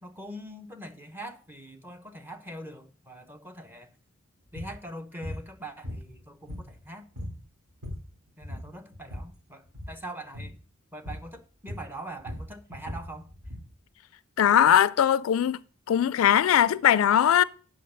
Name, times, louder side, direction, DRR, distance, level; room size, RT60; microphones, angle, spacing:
voice 1, 0.0-3.9 4.5-7.1 8.4-10.5 10.9-13.3, right 1 dB, 10° right, 0.9 m, -42 dB
sound 1, 4.5-4.8 5.2-5.4 5.8-6.8 7.1-7.4 7.7-8.1 8.4-9.3 9.7-10.0 10.3-10.6 11.0-11.3 11.7-13.7, left 1 dB, 75° right, 4.2 m, -38 dB
voice 2, 14.4-15.6 15.9-17.4, left 9 dB, 70° left, 0.3 m, -20 dB
8.4 x 5.7 x 5.6 m
head